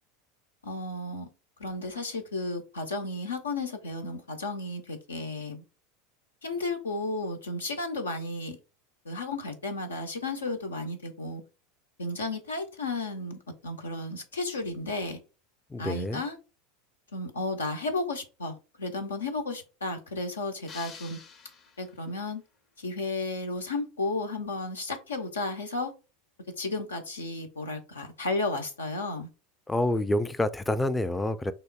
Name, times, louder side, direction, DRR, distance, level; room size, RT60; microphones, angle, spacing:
voice 1, 0.6-1.3 1.6-5.6 6.4-8.6 9.0-11.4 12.0-15.2 15.8-16.4 17.1-21.2 21.8-22.4 22.8-25.9 26.6-29.3, left 2 dB, 85° left, 0.8 m, -33 dB
voice 2, 15.7-16.2 29.7-31.5, left 1 dB, 10° left, 0.4 m, -27 dB
sound 1, 20.7-22.2, left 5 dB, 45° left, 0.9 m, -48 dB
5.4 x 3.1 x 2.2 m
hypercardioid pair, 85°, 0 cm